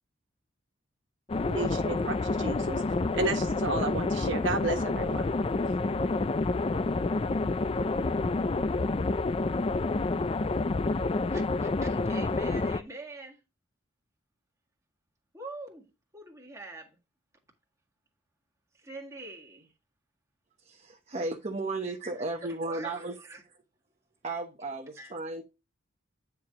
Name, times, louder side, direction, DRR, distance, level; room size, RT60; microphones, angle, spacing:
sound 1, 1.3-12.8, left 3 dB, 30° left, 0.4 m, -28 dB
voice 1, 1.5-2.8 3.1-5.3, right 3 dB, 70° right, 1.4 m, -32 dB
voice 2, 11.3-13.4 15.3-17.0 18.7-19.7 21.8-22.0 22.7-23.4 25.0-25.1, right 2 dB, 15° right, 1.8 m, -44 dB
voice 3, 20.6-23.2 24.2-25.4, right 2 dB, 35° right, 1.0 m, -34 dB
9.4 x 4.5 x 3.7 m
head